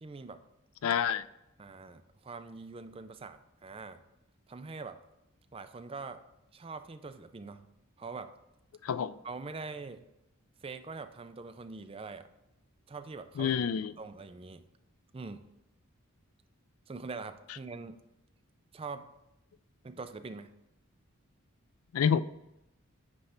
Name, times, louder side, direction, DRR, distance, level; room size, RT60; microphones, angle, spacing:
voice 1, 0.0-0.4 1.6-4.0 4.5-5.0 5.5-6.2 6.5-7.7 8.0-8.3 9.2-10.1 10.6-12.3 12.9-13.5 14.0-14.7 15.1-15.4 16.9-18.0 18.7-19.1 19.8-20.5, right 4 dB, 25° right, 9 dB, 0.4 m, -43 dB
voice 2, 0.8-1.2 8.8-9.1 13.4-13.9 21.9-22.2, left 7 dB, 85° left, 16 dB, 0.4 m, -28 dB
9.5 x 3.3 x 5.6 m, 0.87 s
head